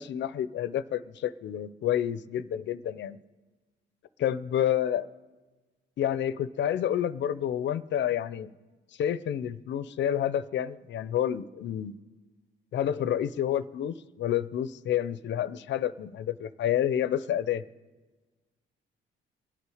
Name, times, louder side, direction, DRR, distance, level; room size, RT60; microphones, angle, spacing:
voice 1, 0.0-3.2 4.2-5.0 6.0-8.5 9.0-12.0 12.7-17.6, left 10 dB, 65° left, 16 dB, 0.6 m, -29 dB
23.5 x 8.4 x 4.9 m, 1.3 s
cardioid pair, 90°, 20 cm